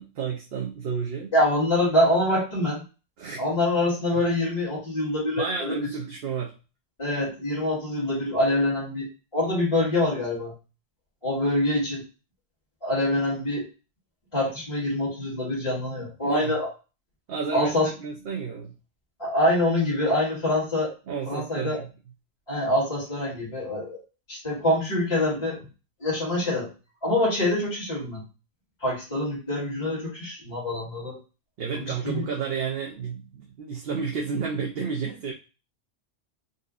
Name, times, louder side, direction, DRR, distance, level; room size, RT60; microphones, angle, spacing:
voice 1, 0.0-1.3 3.2-3.5 4.1-4.2 5.4-6.5 16.2-16.6 17.3-18.7 21.1-21.9 31.6-35.3, right 5 dB, 60° right, -1 dB, 0.8 m, -31 dB
voice 2, 1.3-2.8 3.4-5.7 7.0-9.1 9.3-10.5 11.2-12.0 12.8-13.7 14.3-16.7 17.5-17.9 19.2-20.9 21.3-21.8 22.5-24.0 24.3-25.6 26.0-26.7 27.0-28.2 28.8-31.2 31.7-32.3, left 1 dB, 25° left, -8 dB, 1.8 m, -25 dB
3.9 x 2.6 x 2.4 m, 0.32 s
omnidirectional pair, 1.2 m